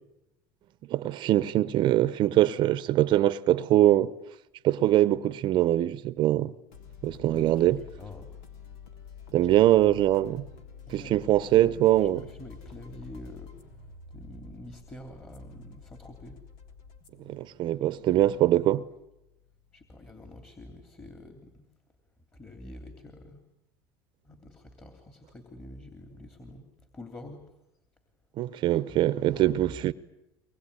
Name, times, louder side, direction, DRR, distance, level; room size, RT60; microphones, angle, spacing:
voice 1, 0.9-4.1 4.6-6.5 7.0-7.8 9.3-10.4 10.9-12.2 17.3-18.8 28.4-29.9, right 13 dB, 50° right, 0.9 m, -23 dB
sound 1, 6.7-20.1, left 6 dB, 80° left, 3.4 m, -49 dB
voice 2, 7.3-7.7 8.0-8.3 9.4-9.5 10.9-13.5 14.1-16.4 18.1-18.3 19.7-21.6 22.3-23.4 24.2-26.6 26.9-27.4 29.3-29.8, left 1 dB, 20° left, 3.0 m, -46 dB
23.5 x 21.5 x 9.8 m
supercardioid pair, 115°, 10 cm